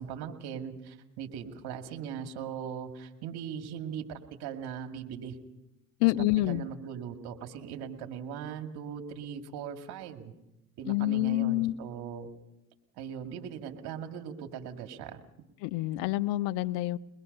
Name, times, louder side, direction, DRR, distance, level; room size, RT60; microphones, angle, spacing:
voice 1, 0.0-5.4 6.0-6.1 6.5-10.3 10.8-12.3 13.0-15.2, right 8 dB, 65° right, 5 dB, 2.4 m, -39 dB
voice 2, 6.0-6.6 10.8-11.7 15.6-17.0, left 17 dB, 75° left, 16 dB, 0.8 m, -27 dB
23.0 x 21.0 x 5.5 m, 0.91 s
hypercardioid pair, 75°, 41 cm